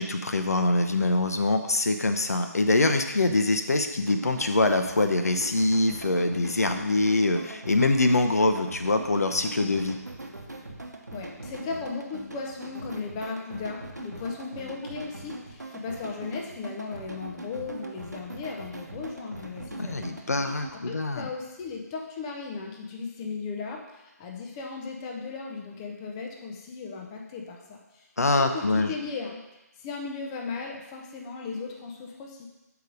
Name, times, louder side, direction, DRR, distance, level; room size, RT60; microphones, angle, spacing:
voice 1, 0.0-10.0 19.8-21.3 28.2-28.9, left 2 dB, 65° left, 7 dB, 0.7 m, -24 dB
sound 1, 4.1-20.7, right 2 dB, 80° right, 1.0 m, -41 dB
voice 2, 11.1-20.1 20.7-29.4 29.8-32.5, left 4 dB, 15° left, 0 dB, 0.6 m, -36 dB
6.5 x 4.9 x 5.2 m, 1.0 s
figure-of-eight pair, 145°, 9 cm